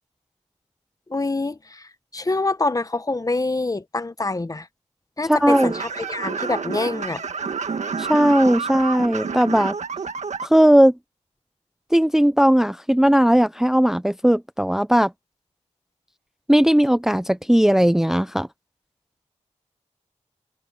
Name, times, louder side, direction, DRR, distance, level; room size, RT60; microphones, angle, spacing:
voice 1, 1.1-4.7 5.2-7.2, left 2 dB, 30° left, 1.1 m, -26 dB
voice 2, 5.2-5.7 8.0-9.7 10.4-10.9 11.9-15.1 16.5-18.5, equal, 5° right, 0.6 m, -17 dB
sound 1, 5.5-10.5, right 5 dB, 75° right, 1.7 m, -29 dB
wide cardioid pair, 70°, 12 cm